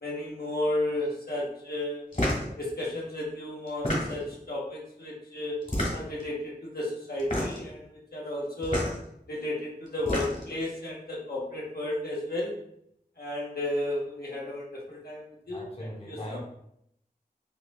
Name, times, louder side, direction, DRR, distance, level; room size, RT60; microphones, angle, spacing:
voice 1, 0.0-2.0 2.6-5.6 5.9-8.9 9.3-12.6 13.2-16.4, left 1 dB, 75° left, -5 dB, 0.9 m, -33 dB
sound 1, 2.1-2.5 3.7-4.4 5.6-6.2 7.2-7.7 8.6-8.9 9.9-10.5, equal, 55° left, 1.3 m, -29 dB
voice 2, 15.4-16.4, equal, 40° left, -2 dB, 0.8 m, -40 dB
4.6 x 2.5 x 2.3 m, 0.75 s
wide cardioid pair, 40°, 16 cm